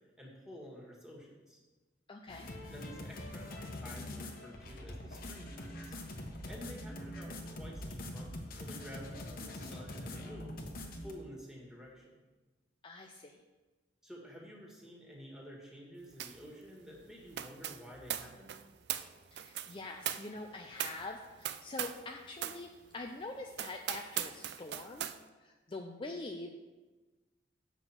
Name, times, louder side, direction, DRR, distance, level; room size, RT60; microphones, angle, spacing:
voice 1, 0.2-1.6 2.7-6.0 6.5-10.6 11.0-12.1 14.0-18.5, equal, 5° right, -2 dB, 1.8 m, -50 dB
voice 2, 2.1-2.5 12.8-13.4 19.3-25.1 25.4-26.5, left 2 dB, 30° left, 2 dB, 0.5 m, -44 dB
sound 1, 2.3-11.1, left 1 dB, 50° left, 1.1 m, -44 dB
sound 2, 16.2-16.5 16.7-22.1 22.4-22.6 23.1-23.2 23.5-25.2, right 11 dB, 60° right, 0.4 m, -40 dB
7.8 x 5.9 x 5.8 m, 1.2 s
head